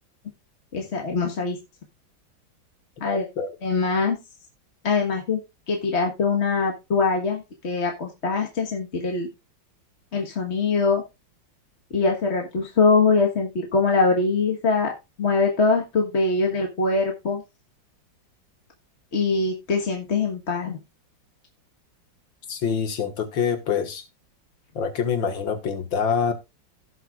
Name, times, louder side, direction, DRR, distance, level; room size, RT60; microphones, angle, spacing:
voice 1, 0.7-1.6 3.0-3.3 3.6-4.2 4.8-5.4 5.7-9.3 10.1-11.0 11.9-14.9 15.2-17.4 19.1-20.8, left 4 dB, 40° left, 1.6 m, -23 dB
voice 2, 3.0-3.5 22.5-24.0 24.8-26.3, left 6 dB, 80° left, 2.3 m, -25 dB
17.0 x 6.7 x 2.4 m
omnidirectional pair, 2.0 m